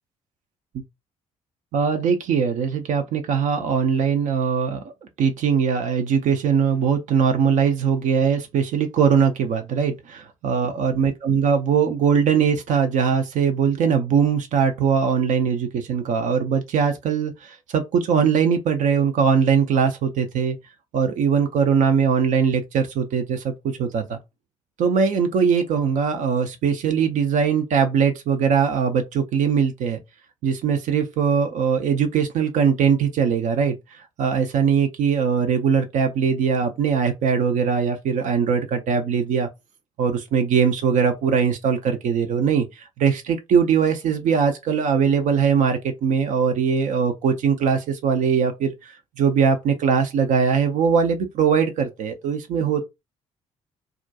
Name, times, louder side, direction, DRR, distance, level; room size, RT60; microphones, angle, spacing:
voice 1, 1.7-4.8 5.2-20.6 20.9-24.2 24.8-30.0 30.4-39.5 40.0-52.8, right 6 dB, 50° right, 0.4 m, -21 dB
2.4 x 2.1 x 2.6 m
figure-of-eight pair, 45°, 17 cm